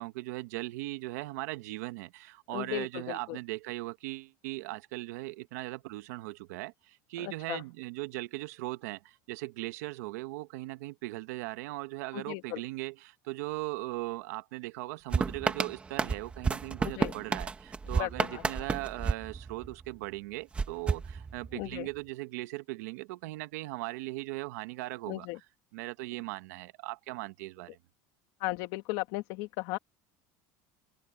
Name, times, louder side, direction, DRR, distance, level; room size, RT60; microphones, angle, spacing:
voice 1, 0.0-25.4 25.7-27.8, right 20 dB, 75° right, 1.5 m, -39 dB
voice 2, 2.5-3.4 7.2-7.6 12.1-12.6 16.8-17.1 18.0-18.4 21.5-21.9 25.1-25.4 28.4-29.8, left 20 dB, 55° left, 2.2 m, -36 dB
sound 1, 15.1-20.0 20.5-21.8, right 4 dB, 15° right, 1.5 m, -32 dB
cardioid pair, 165°, 9 cm